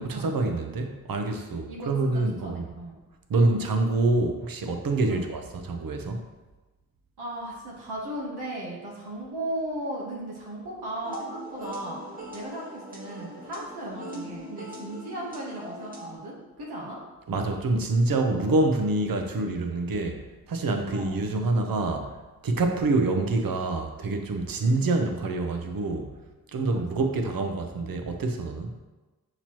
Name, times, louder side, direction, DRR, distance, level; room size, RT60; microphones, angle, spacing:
voice 1, 0.0-2.7 3.3-6.2 17.3-20.2 20.5-22.2 22.4-26.1 26.5-28.7, right 2 dB, 65° right, 5 dB, 0.7 m, -26 dB
voice 2, 1.7-2.1 2.4-3.0 5.1-5.3 7.2-12.0 12.3-17.0 20.9-21.1 26.7-27.0, right 1 dB, 85° right, -4 dB, 0.9 m, -36 dB
sound 1, 11.0-16.1, right 1 dB, 25° right, 1.0 m, -40 dB
5.8 x 3.0 x 2.9 m, 1.2 s
cardioid pair, 45°, 38 cm